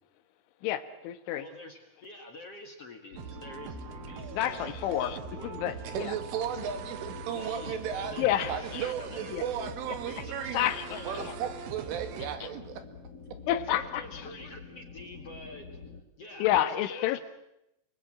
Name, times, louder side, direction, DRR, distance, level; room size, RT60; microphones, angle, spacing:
voice 1, 0.6-1.5 4.3-6.1 8.2-8.9 9.3-9.4 10.5-11.4 13.5-14.0 16.4-17.2, left 12 dB, 80° left, 12 dB, 3.6 m, -29 dB
voice 2, 1.4-4.6 5.3-5.5 7.3-9.3 9.9-11.3 13.5-15.8 16.2-17.2, left 2 dB, 50° left, 5 dB, 1.9 m, -46 dB
sound 1, 3.1-16.0, left 3 dB, 35° left, 3.9 m, -46 dB
sound 2, 3.2-12.4, right 9 dB, 70° right, 3.3 m, -43 dB
voice 3, 5.9-10.7 11.0-12.8, right 8 dB, 90° right, 9 dB, 4.7 m, -35 dB
29.5 x 20.5 x 8.8 m, 0.87 s
omnidirectional pair, 5.5 m